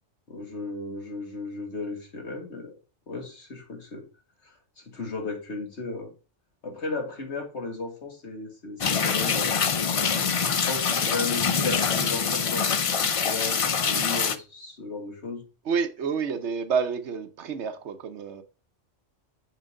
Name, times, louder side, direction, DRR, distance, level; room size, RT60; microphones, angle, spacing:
voice 1, 0.3-2.7 3.1-4.0 4.4-6.1 6.6-9.6 10.4-15.4, left 3 dB, 70° left, 2.4 m, -35 dB
sound 1, 8.8-14.4, left 6 dB, 45° left, 0.4 m, -25 dB
voice 2, 15.7-18.4, right 6 dB, 70° right, 1.1 m, -29 dB
7.5 x 5.0 x 3.7 m
omnidirectional pair, 1.2 m